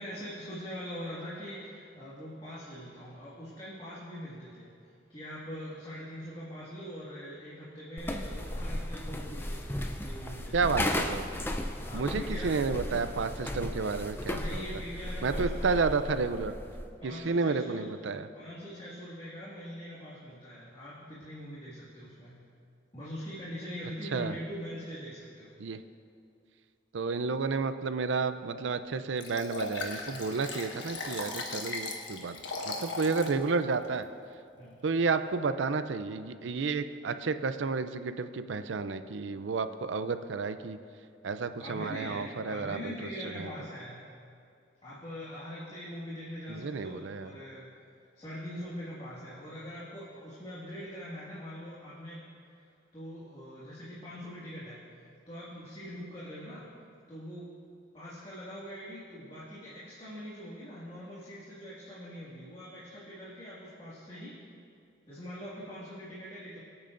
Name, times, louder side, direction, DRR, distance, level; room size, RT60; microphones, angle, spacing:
voice 1, 0.0-10.6 11.8-12.6 14.3-15.8 17.0-17.9 18.3-22.4 22.9-25.5 34.6-34.8 41.6-44.0 44.8-47.7 48.2-52.2 52.6-52.7 52.9-54.8 55.3-56.7 57.1-57.5 57.9-64.4 65.1-66.6, equal, 30° left, -9 dB, 2.0 m, -42 dB
sound 1, 8.0-16.9, left 1 dB, 10° left, 0.5 m, -35 dB
voice 2, 10.5-11.2 11.9-14.6 15.2-16.5 17.0-18.3 24.1-24.3 25.6-25.8 26.9-32.4 32.6-34.1 34.8-40.8 41.2-43.1 43.4-43.5 46.5-47.3, right 4 dB, 80° right, 11 dB, 0.5 m, -31 dB
Liquid, 29.2-33.4 33.8-33.9, left 3 dB, 80° left, 1.3 m, -37 dB
23.0 x 8.8 x 2.6 m, 2.4 s
head